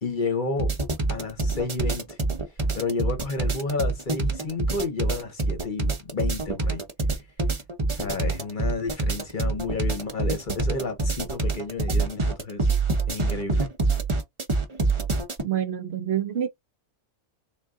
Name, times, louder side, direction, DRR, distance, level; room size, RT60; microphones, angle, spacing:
voice 1, 0.0-0.7 1.1-2.2 2.7-6.8 7.9-12.7 13.1-13.7, left 3 dB, 45° left, 0.9 m, -31 dB
sound 1, 0.6-15.4, right 3 dB, 30° right, 0.7 m, -25 dB
voice 2, 15.4-16.5, right 10 dB, 65° right, 0.8 m, -27 dB
3.8 x 2.3 x 3.5 m
omnidirectional pair, 1.3 m